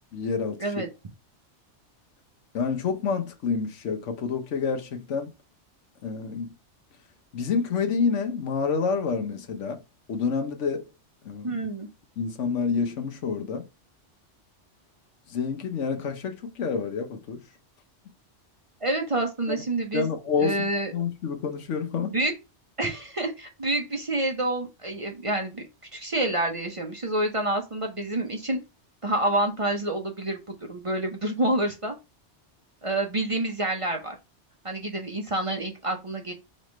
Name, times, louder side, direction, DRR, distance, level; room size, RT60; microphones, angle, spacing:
voice 1, 0.1-0.8 2.5-5.3 6.0-6.5 7.3-9.8 10.1-10.8 11.2-11.7 12.2-13.6 15.3-17.4 19.9-20.6 20.9-22.1, left 5 dB, 90° left, 1.2 m, -28 dB
voice 2, 11.4-11.9 18.8-20.1 20.4-20.9 22.1-22.3 22.8-25.7 25.9-28.6 29.0-30.4 30.7-32.0 32.8-34.2 34.6-36.3, right 1 dB, 35° right, 0.7 m, -28 dB
4.9 x 3.2 x 3.1 m
omnidirectional pair, 1.2 m